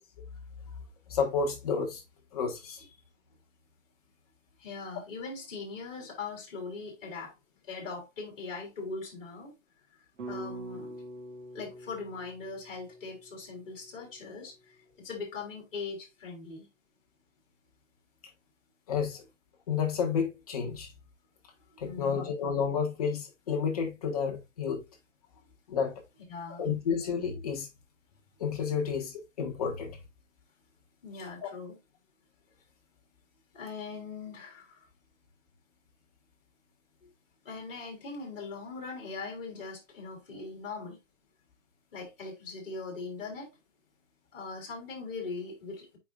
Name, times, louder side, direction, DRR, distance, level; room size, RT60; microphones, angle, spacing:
voice 1, 1.1-2.0 2.3-2.9 18.9-19.2 19.7-20.9 21.8-24.8 25.7-26.0 26.6-27.7 28.4-30.0 31.4-31.5, left 6 dB, 30° left, 1.5 m, -31 dB
voice 2, 4.6-7.3 7.7-9.5 10.2-11.0 11.5-16.7 21.8-22.3 26.3-26.7 31.0-31.8 33.5-34.9 37.0-37.1 37.4-41.0 41.9-43.5 44.3-46.0, left 4 dB, 45° left, 3.5 m, -40 dB
sound 1, 10.2-14.5, right 1 dB, 70° right, 2.4 m, -45 dB
8.2 x 5.0 x 2.5 m
hypercardioid pair, 170°, 38 cm